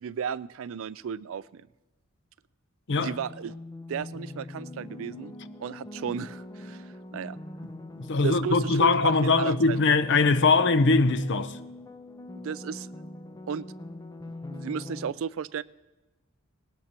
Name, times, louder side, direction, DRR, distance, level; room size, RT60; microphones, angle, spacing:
voice 1, 0.0-1.6 2.9-3.6 3.9-5.3 5.6-7.4 8.2-9.8 12.4-12.9 13.5-13.6 14.5-15.6, right 7 dB, 65° right, 0.4 m, -34 dB
sound 1, 3.1-15.1, left 2 dB, 15° left, 0.5 m, -42 dB
voice 2, 7.9-11.6, left 3 dB, 60° left, 0.7 m, -22 dB
19.0 x 19.0 x 2.9 m
head